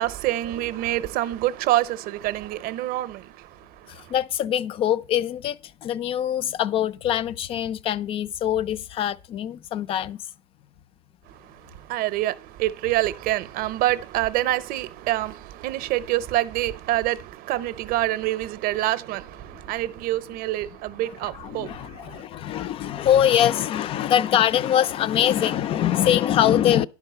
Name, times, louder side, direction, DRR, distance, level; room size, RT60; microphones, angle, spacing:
voice 1, 0.0-4.1 11.3-22.2, right 15 dB, 45° right, 0.6 m, -27 dB
voice 2, 3.9-10.2 21.3-26.9, left 10 dB, 30° left, 0.3 m, -23 dB
10.5 x 4.7 x 6.7 m
supercardioid pair, 130°, 21 cm